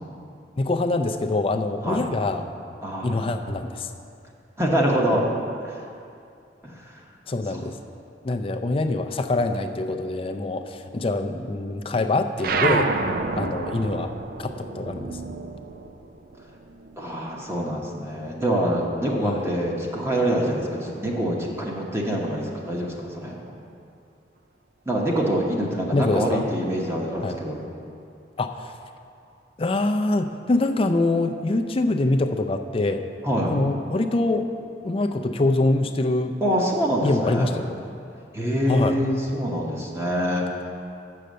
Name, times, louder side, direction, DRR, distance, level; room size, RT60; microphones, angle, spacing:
voice 1, 0.6-2.4 3.0-3.9 7.3-7.8 8.2-12.9 13.4-14.1 14.4-15.2 19.2-19.5 25.9-26.5 27.2-27.4 28.4-28.7 29.6-33.0 33.4-34.5 34.8-36.4 37.0-37.7 38.7-38.9, left 2 dB, 30° left, 7 dB, 0.4 m, -24 dB
voice 2, 2.8-3.3 4.6-5.2 5.6-5.9 6.6-7.0 7.5-7.6 13.3-13.6 17.0-23.4 24.9-27.6 33.2-33.5 36.4-37.5 38.3-40.5, equal, 15° right, -2 dB, 1.0 m, -25 dB
sound 1, 12.4-17.3 17.6-19.0, right 3 dB, 55° right, 0.5 m, -29 dB
6.7 x 6.3 x 7.6 m, 2.5 s
head